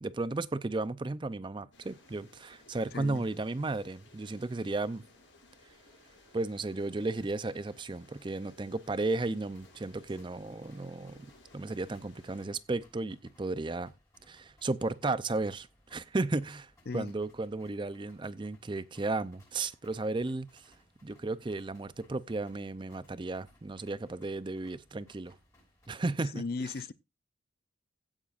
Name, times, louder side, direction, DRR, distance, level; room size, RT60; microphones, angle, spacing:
voice 1, 0.0-5.0 6.3-11.3 11.5-13.9 14.3-20.7 21.0-25.3 25.9-26.7, right 2 dB, 25° right, 0.4 m, -34 dB
sound 1, 1.7-12.5, left 2 dB, 70° left, 6.6 m, -60 dB
sound 2, 9.4-25.9, left 1 dB, 15° left, 6.0 m, -65 dB
voice 2, 26.3-26.9, left 3 dB, 50° left, 0.5 m, -36 dB
16.5 x 8.9 x 2.5 m
head